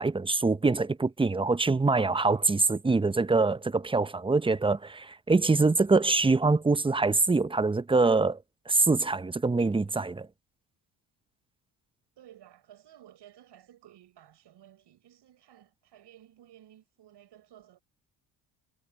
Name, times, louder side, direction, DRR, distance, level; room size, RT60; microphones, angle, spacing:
voice 1, 0.0-8.4 8.7-10.3, right 3 dB, 10° right, 0.7 m, -24 dB
voice 2, 12.2-17.8, right 12 dB, 65° right, 7.2 m, -55 dB
hypercardioid pair, 60°, 45 cm